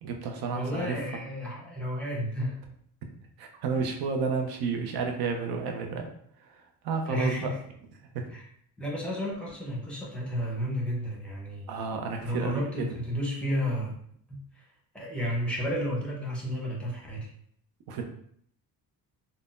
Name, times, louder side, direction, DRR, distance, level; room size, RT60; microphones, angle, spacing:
voice 1, 0.0-1.0 3.4-6.1 6.4-7.5 8.1-8.2 11.7-12.9 17.9-18.0, right 5 dB, 70° right, 4 dB, 0.7 m, -31 dB
voice 2, 0.5-2.6 7.1-7.6 8.3-8.4 8.8-11.7 12.2-13.9 14.3-14.6 14.9-17.3, equal, 5° left, -3 dB, 0.8 m, -32 dB
3.7 x 2.1 x 2.5 m, 0.65 s
cardioid pair, 140°, 38 cm